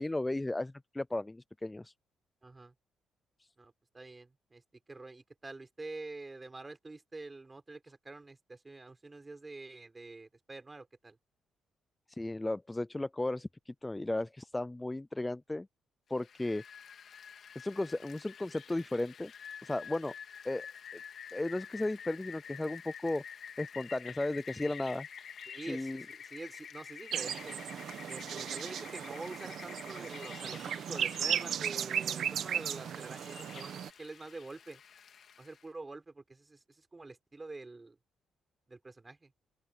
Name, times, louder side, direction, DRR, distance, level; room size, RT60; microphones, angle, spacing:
voice 1, 0.0-1.9 12.1-15.7 16.1-16.6 17.6-19.3 19.6-20.1 20.4-20.7 21.3-23.2 23.6-25.1 25.7-26.0, left 2 dB, 15° left, 0.4 m, -35 dB
voice 2, 2.4-2.7 3.6-4.6 4.9-11.2 25.5-27.6 28.1-34.8 35.4-38.0 38.7-39.3, right 3 dB, 20° right, 4.2 m, -47 dB
Rain, 16.2-35.6, left 7 dB, 55° left, 2.6 m, -49 dB
sound 1, 27.1-33.9, right 9 dB, 65° right, 1.3 m, -36 dB
open air
cardioid pair, 90°, 0 cm